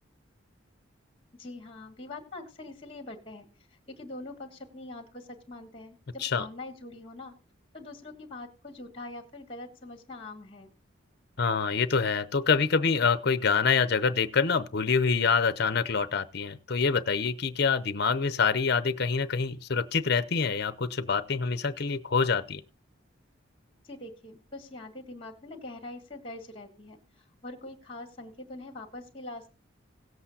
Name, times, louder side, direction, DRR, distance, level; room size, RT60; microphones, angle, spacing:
voice 1, 1.3-3.5 3.9-7.3 7.7-10.7 23.8-27.0 27.4-29.5, left 2 dB, 25° left, 1.8 m, -43 dB
voice 2, 11.4-22.6, left 5 dB, 50° left, 0.7 m, -26 dB
18.0 x 7.9 x 2.8 m
head